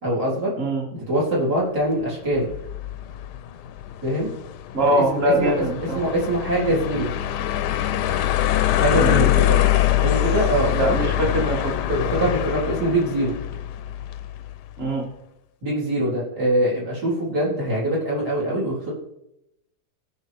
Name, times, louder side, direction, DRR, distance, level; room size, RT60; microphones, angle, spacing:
voice 1, 0.0-0.5 0.9-2.5 4.0-4.3 4.9-5.0 5.4-5.5 5.9-7.1 8.7-9.6 10.0-10.9 11.9-13.3 15.6-18.9, right 1 dB, 75° right, -6 dB, 4.5 m, -23 dB
sound 1, 2.4-14.5, left 13 dB, 90° left, 1.2 m, -24 dB
voice 2, 4.7-6.0 9.0-9.3 10.7-11.7 14.8-15.0, right 1 dB, 35° right, 1 dB, 2.0 m, -22 dB
17.5 x 6.2 x 3.4 m, 0.82 s
omnidirectional pair, 1.8 m